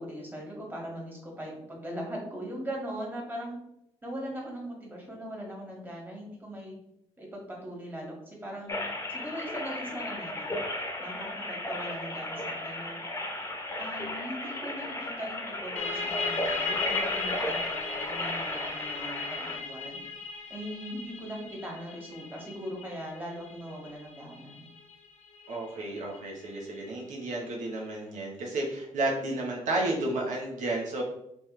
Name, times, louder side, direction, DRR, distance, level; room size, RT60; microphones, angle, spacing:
voice 1, 0.0-3.5 4.0-6.8 7.2-8.7 9.1-10.6 11.0-13.0 13.8-20.0 20.5-24.7, equal, 15° right, -2 dB, 1.8 m, -40 dB
sound 1, 8.7-19.6, left 1 dB, 20° left, 0.9 m, -34 dB
sound 2, 15.8-27.1, left 4 dB, 70° left, 0.9 m, -38 dB
voice 2, 25.5-31.0, right 2 dB, 85° right, -2 dB, 1.0 m, -32 dB
5.4 x 3.2 x 3.1 m, 0.79 s
cardioid pair, 90°, 12 cm